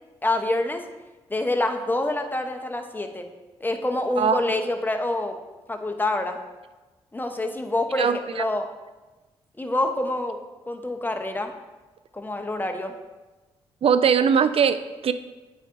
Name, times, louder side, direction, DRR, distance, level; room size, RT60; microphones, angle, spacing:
voice 1, 0.2-0.8 1.3-3.3 3.6-5.4 5.7-6.4 7.1-8.7 9.6-10.4 10.7-11.5 12.1-13.0, left 2 dB, 15° left, 5 dB, 0.8 m, -26 dB
voice 2, 8.0-8.4 13.8-15.1, right 7 dB, 50° right, 12 dB, 0.4 m, -21 dB
8.3 x 4.9 x 2.6 m, 1.2 s
supercardioid pair, 45°, 12 cm